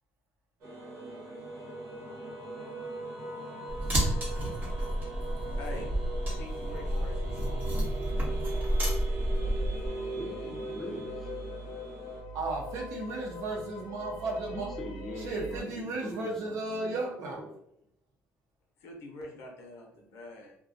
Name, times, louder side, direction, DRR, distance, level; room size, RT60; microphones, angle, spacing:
sound 1, 0.6-12.2, right 2 dB, 85° right, 1.0 m, -41 dB
sound 2, 3.7-9.9, right 1 dB, 35° right, 0.9 m, -30 dB
voice 1, 5.6-5.9 6.4-7.7 18.8-20.6, left 2 dB, 65° left, 1 dB, 0.7 m, -45 dB
sound 3, 6.7-15.6, equal, 85° left, 0.4 m, -41 dB
voice 2, 10.2-11.3 14.5-17.5, equal, 5° left, 1 dB, 0.5 m, -42 dB
voice 3, 12.3-14.7 15.2-17.5, right 3 dB, 70° right, 0 dB, 0.7 m, -34 dB
2.4 x 2.2 x 2.5 m, 0.76 s
cardioid pair, 125°, 5 cm